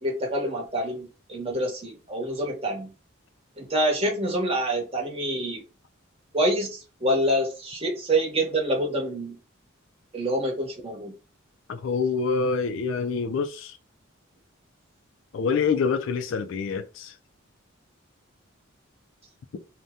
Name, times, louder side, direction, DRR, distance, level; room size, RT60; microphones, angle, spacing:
voice 1, 0.0-2.9 3.6-5.6 6.3-9.4 10.1-11.1, right 1 dB, 30° right, 0.9 m, -26 dB
voice 2, 11.7-13.8 15.3-17.2, left 5 dB, 65° left, 0.3 m, -26 dB
2.7 x 2.1 x 3.5 m
head